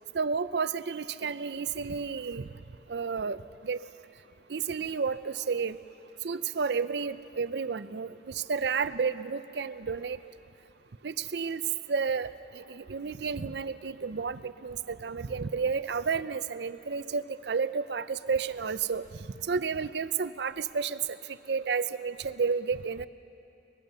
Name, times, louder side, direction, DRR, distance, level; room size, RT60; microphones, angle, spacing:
voice 1, 0.1-2.5 2.9-3.4 3.6-3.8 4.5-5.8 6.2-10.2 11.0-11.6 11.9-19.0 19.5-21.0 21.5-23.1, right 5 dB, 65° right, 14 dB, 0.6 m, -31 dB
24.5 x 19.5 x 6.8 m, 2.7 s
head